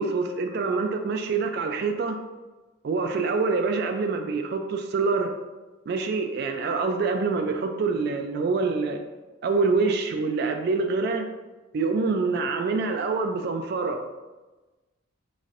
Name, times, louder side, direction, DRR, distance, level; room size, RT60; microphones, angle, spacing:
voice 1, 0.0-2.2 2.8-5.3 5.9-9.0 9.4-11.3 11.7-14.1, right 4 dB, 50° right, 5 dB, 0.3 m, -26 dB
4.2 x 4.1 x 2.4 m, 1.2 s
head